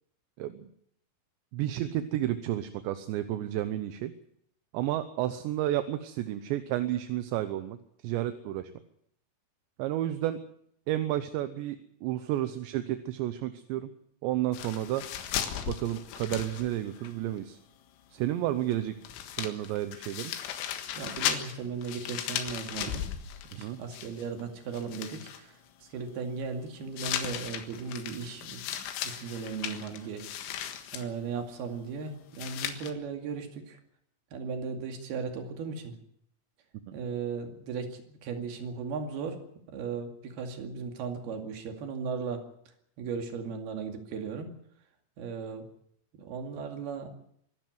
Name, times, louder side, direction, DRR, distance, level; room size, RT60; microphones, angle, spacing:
voice 1, 0.4-0.7 1.5-4.1 4.7-7.8 8.0-8.7 9.8-10.4 10.9-13.9 14.2-15.1 15.7-17.6 18.1-19.0 19.4-20.3 23.6-23.8, right 13 dB, 75° right, 10 dB, 2.9 m, -31 dB
sound 1, 14.5-17.1 17.4-17.5 18.7-18.8 19.0-24.4 24.7-25.4 27.0-31.1 32.4-32.9, left 10 dB, 90° left, 4.2 m, -36 dB
voice 2, 21.0-23.1 23.5-28.6 29.0-30.7 30.9-33.8 34.3-36.0 36.9-39.4 39.7-42.4 43.0-44.5 45.2-45.7 46.2-47.1, right 5 dB, 55° right, 5 dB, 4.0 m, -37 dB
25.0 x 12.0 x 9.4 m, 0.69 s
omnidirectional pair, 5.7 m